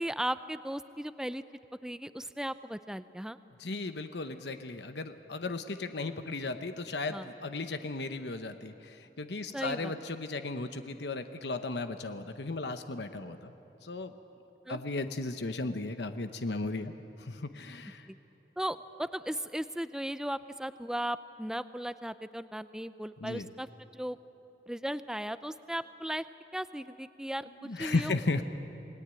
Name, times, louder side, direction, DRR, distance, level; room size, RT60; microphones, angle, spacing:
voice 1, 0.0-1.4 1.8-3.4 7.1-7.3 9.5-9.9 14.7-14.8 18.1-18.2 18.6-23.7 23.9-24.2 24.7-26.2 26.5-28.1, right 1 dB, 5° right, 13 dB, 0.5 m, -36 dB
voice 2, 3.6-13.5 13.8-14.1 14.7-16.9 17.2-18.1 23.2-23.5 27.6-28.4, left 3 dB, 80° left, 9 dB, 1.0 m, -35 dB
28.0 x 19.5 x 9.1 m, 2.9 s
head